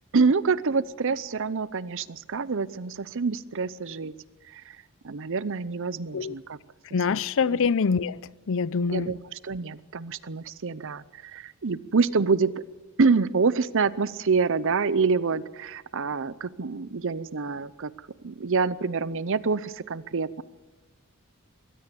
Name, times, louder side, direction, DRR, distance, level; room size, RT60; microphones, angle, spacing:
voice 1, 0.1-4.1 4.5-4.8 5.0-6.6 7.1-7.2 7.5-7.6 8.9-12.5 13.0-17.9 18.2-20.4, right 4 dB, 60° right, 0.7 m, -26 dB
voice 2, 6.9-8.2 8.5-9.1, left 5 dB, 60° left, 0.6 m, -25 dB
22.5 x 17.0 x 6.9 m
head